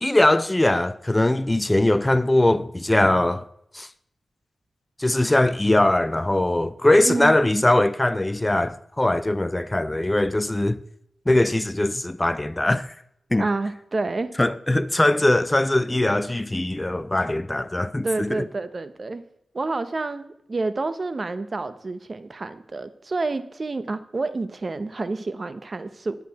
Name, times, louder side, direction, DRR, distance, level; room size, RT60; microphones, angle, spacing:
voice 1, 0.0-3.4 3.7-3.9 5.0-10.8 11.3-12.9 13.3-13.4 14.4-18.4, left 1 dB, 20° left, 0.4 m, -21 dB
voice 2, 7.0-7.6 13.4-14.3 18.0-19.2 19.5-26.2, right 3 dB, 45° right, 0.9 m, -29 dB
10.5 x 9.3 x 4.2 m
cardioid pair, 70°, 0 cm